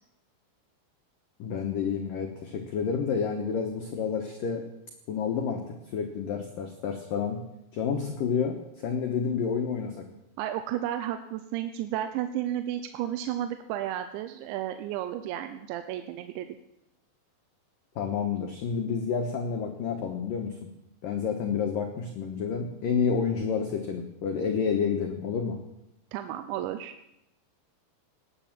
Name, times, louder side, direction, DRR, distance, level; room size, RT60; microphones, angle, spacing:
voice 1, 1.4-4.6 5.1-7.4 7.7-10.0 18.0-20.5 21.0-25.6, left 6 dB, 70° left, 4 dB, 2.1 m, -29 dB
voice 2, 10.4-16.5 26.1-26.9, right 11 dB, 80° right, 8 dB, 2.9 m, -32 dB
19.0 x 10.0 x 7.3 m, 0.87 s
omnidirectional pair, 5.6 m